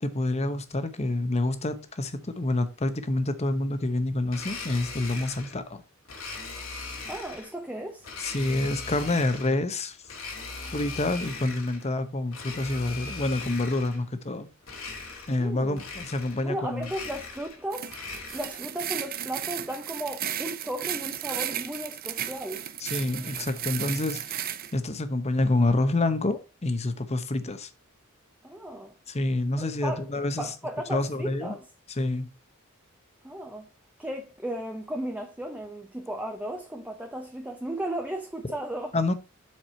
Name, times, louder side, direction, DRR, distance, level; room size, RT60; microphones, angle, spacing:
voice 1, 0.0-5.8 8.2-10.0 10.7-14.5 15.3-16.9 22.8-27.7 29.1-30.5 30.9-31.5 32.0-32.3 38.9-39.1, left 2 dB, 30° left, 0.9 m, -27 dB
Domestic sounds home sounds, 4.3-5.6 6.1-7.5 8.0-9.6 10.0-11.9 12.3-14.0 14.6-15.5 15.7-16.5 16.8-18.6, left 4 dB, 75° left, 2.3 m, -39 dB
voice 2, 7.1-8.1 15.4-15.8 16.4-17.9 18.3-22.6 28.4-29.0 29.6-31.6 33.2-33.7 34.0-38.9, right 1 dB, 5° right, 0.8 m, -35 dB
sound 1, 17.7-24.7, right 11 dB, 45° right, 0.6 m, -34 dB
7.4 x 4.8 x 4.3 m
head